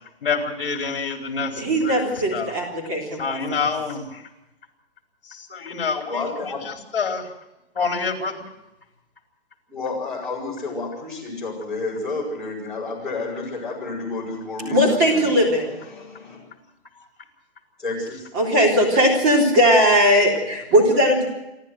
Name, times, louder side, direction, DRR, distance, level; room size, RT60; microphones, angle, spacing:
voice 1, 0.2-2.1 2.3-2.5 3.2-4.2 5.3-6.2 6.9-7.3 7.7-8.4, left 5 dB, 60° left, 4 dB, 4.6 m, -27 dB
voice 2, 1.6-3.7 14.7-15.8 18.3-21.3, equal, 15° right, 1 dB, 3.7 m, -19 dB
voice 3, 6.0-6.7 9.7-15.3 15.9-16.5 17.8-18.3, left 3 dB, ahead, -9 dB, 5.5 m, -30 dB
28.0 x 12.0 x 8.0 m, 0.92 s
hypercardioid pair, 180°, 32 cm